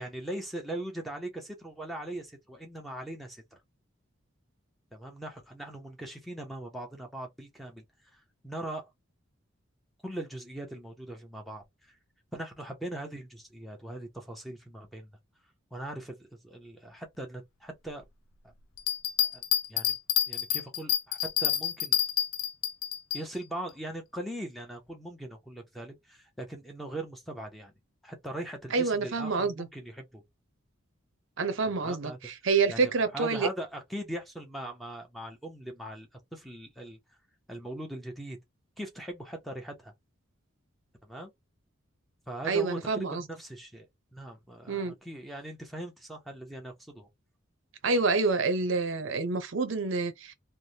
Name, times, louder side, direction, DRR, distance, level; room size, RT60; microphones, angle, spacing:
voice 1, 0.0-3.6 4.9-7.8 8.1-8.9 10.0-12.0 12.3-15.1 15.7-18.0 18.4-18.5 19.3-19.4 19.7-20.0 20.3-22.0 23.1-27.7 28.0-30.2 31.6-32.2 32.7-37.0 37.5-38.4 38.8-39.9 41.0-41.3 42.3-43.9 44.1-47.1, right 1 dB, ahead, 0.7 m, -40 dB
Bell, 18.8-23.2 23.7-23.8, left 11 dB, 90° left, 0.5 m, -28 dB
voice 2, 28.7-29.7 31.4-33.5 42.4-43.2 44.7-44.9 47.8-50.3, right 4 dB, 65° right, 0.6 m, -27 dB
3.2 x 2.1 x 2.7 m
head